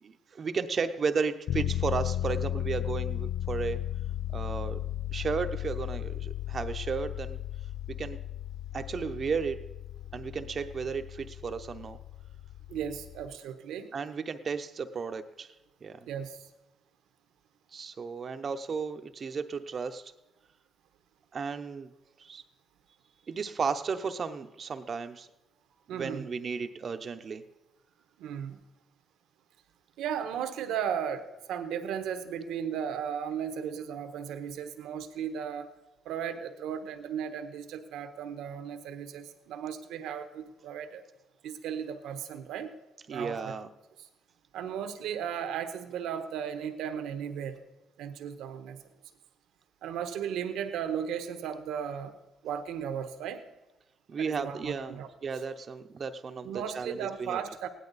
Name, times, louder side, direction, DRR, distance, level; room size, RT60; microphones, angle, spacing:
voice 1, 0.0-3.9 4.3-4.8 5.1-7.4 7.9-8.2 8.7-9.7 10.1-12.0 13.9-15.5 15.8-16.1 17.7-20.1 21.3-21.9 22.2-22.4 23.3-25.3 25.9-27.4 43.1-43.7 54.1-57.4, right 5 dB, 45° right, 8 dB, 0.7 m, -34 dB
sound 1, 1.5-13.3, left 12 dB, 70° left, 0.3 m, -35 dB
voice 2, 12.7-13.9 16.0-16.5 25.9-26.3 28.2-28.6 30.0-35.7 36.0-41.0 41.4-42.7 43.1-43.5 44.5-47.6 48.0-48.8 49.8-52.1 52.4-53.4 54.2-55.1 56.4-57.7, right 8 dB, 85° right, 8 dB, 1.1 m, -35 dB
16.5 x 10.5 x 4.1 m, 1.0 s
cardioid pair, 90°, 0 cm